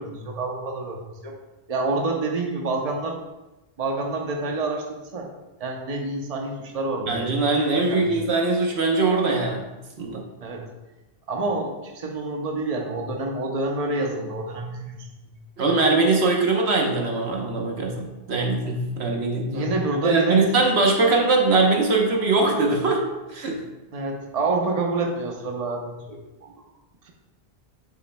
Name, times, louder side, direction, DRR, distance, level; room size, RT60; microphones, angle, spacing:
voice 1, 0.0-1.4 1.7-3.2 3.8-5.3 5.6-7.3 7.9-8.2 10.4-10.6 11.3-15.3 19.5-20.5 23.9-26.5, right 2 dB, 40° right, 1 dB, 0.9 m, -28 dB
voice 2, 7.1-9.7 10.0-10.2 15.6-19.7 20.0-23.0 23.3-23.6, right 3 dB, 80° right, 1 dB, 1.3 m, -21 dB
8.2 x 7.1 x 2.3 m, 1.1 s
omnidirectional pair, 1.1 m